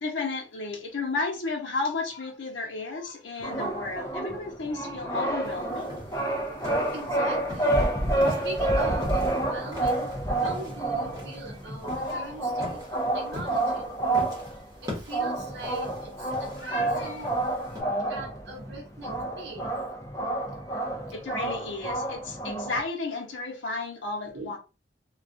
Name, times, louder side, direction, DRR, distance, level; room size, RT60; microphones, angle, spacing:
voice 1, 0.0-6.0 12.0-12.3 16.6-17.3 21.1-24.6, left 3 dB, 85° left, 0.8 m, -33 dB
sound 1, 3.4-22.8, right 2 dB, 15° left, 0.4 m, -29 dB
sound 2, 5.4-17.8, left 1 dB, 20° right, 0.9 m, -42 dB
voice 2, 6.9-7.8 8.3-14.0 14.8-17.3 18.1-19.8 24.3-24.5, right 2 dB, 60° right, 0.8 m, -42 dB
2.3 x 2.3 x 2.5 m
head